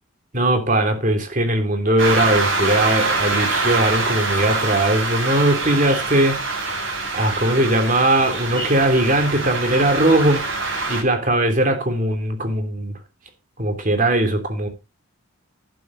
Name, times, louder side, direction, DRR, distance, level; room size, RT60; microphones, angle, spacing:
voice 1, 0.3-6.4 7.1-10.4 10.9-12.9 13.6-14.7, right 1 dB, 40° right, 3.0 m, -19 dB
sound 1, 2.0-11.0, right 3 dB, 65° right, 7.9 m, -24 dB
12.0 x 10.0 x 4.0 m
head